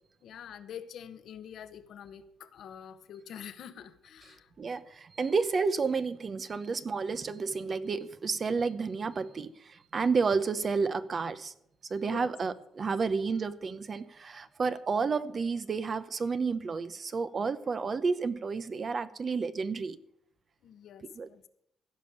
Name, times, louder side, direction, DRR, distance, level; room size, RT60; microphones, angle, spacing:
voice 1, 0.2-4.5 12.0-12.3 20.6-21.4, left 8 dB, 70° left, 10 dB, 1.0 m, -46 dB
voice 2, 4.6-11.5 11.9-20.0 21.1-21.3, right 4 dB, 40° right, 13 dB, 0.8 m, -31 dB
15.5 x 5.4 x 8.4 m, 0.75 s
cardioid pair, 90°, 0 cm